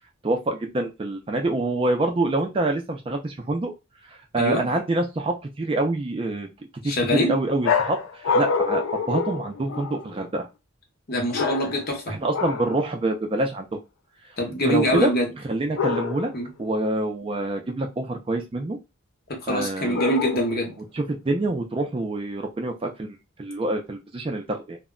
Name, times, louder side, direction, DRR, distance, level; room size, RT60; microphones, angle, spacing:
voice 1, 0.2-3.7 4.3-6.5 6.8-10.5 12.1-13.8 14.6-15.1 15.4-16.3 16.6-18.8 19.5-20.0 20.9-24.8, right 2 dB, 25° right, 3 dB, 0.3 m, -26 dB
voice 2, 6.8-7.3 11.1-12.2 14.4-15.3 16.3-16.5 19.4-20.7, equal, 45° left, 1 dB, 0.8 m, -24 dB
sound 1, 7.6-10.1 11.3-12.0 12.3-12.8 15.7-16.4 19.9-20.7, left 5 dB, 70° left, 0.4 m, -26 dB
2.1 x 2.0 x 3.6 m, 0.24 s
head